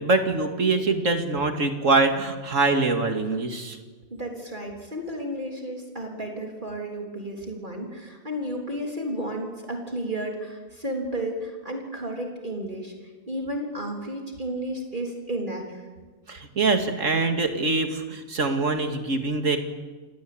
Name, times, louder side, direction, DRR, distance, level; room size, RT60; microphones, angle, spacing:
voice 1, 0.0-3.8 16.3-19.6, right 3 dB, 65° right, 6 dB, 2.5 m, -24 dB
voice 2, 4.1-15.9, right 1 dB, 35° right, 1 dB, 3.9 m, -32 dB
28.5 x 17.5 x 8.7 m, 1.3 s
omnidirectional pair, 1.4 m